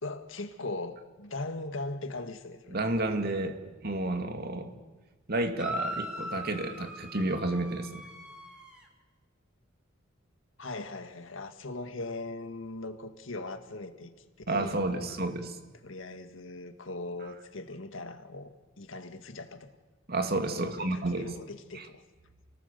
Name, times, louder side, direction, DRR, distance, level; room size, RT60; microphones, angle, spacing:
voice 1, 0.0-2.8 10.6-14.1 14.5-15.1 15.8-19.7 20.6-22.0, left 2 dB, 70° left, 2.0 m, -39 dB
voice 2, 2.7-4.7 5.3-7.9 14.5-15.6 20.1-21.3 21.7-21.9, right 2 dB, 50° right, 2.3 m, -31 dB
sound 1, 5.6-8.8, equal, 5° right, 3.3 m, -39 dB
29.5 x 19.0 x 6.9 m
head